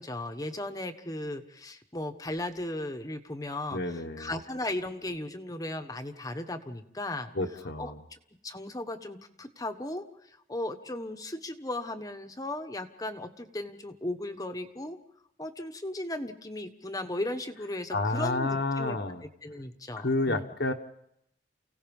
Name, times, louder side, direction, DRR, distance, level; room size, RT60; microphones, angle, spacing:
voice 1, 0.0-7.3 7.8-8.2 8.4-10.0 10.5-15.0 15.4-19.0 19.4-20.5, left 1 dB, 20° left, 7 dB, 1.3 m, -36 dB
voice 2, 3.7-4.3 7.3-8.0 17.9-19.2 20.0-20.7, left 2 dB, 65° left, 2 dB, 1.3 m, -30 dB
29.5 x 17.5 x 5.4 m, 0.74 s
head